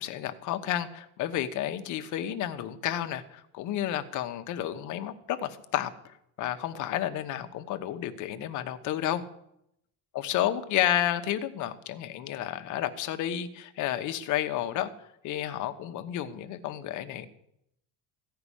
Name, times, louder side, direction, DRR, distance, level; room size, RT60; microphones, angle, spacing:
voice 1, 0.0-9.3 10.1-14.9 15.2-17.3, left 12 dB, 45° left, 9 dB, 1.1 m, -31 dB
15.0 x 5.8 x 9.9 m, 0.78 s
cardioid pair, 175°, 40 cm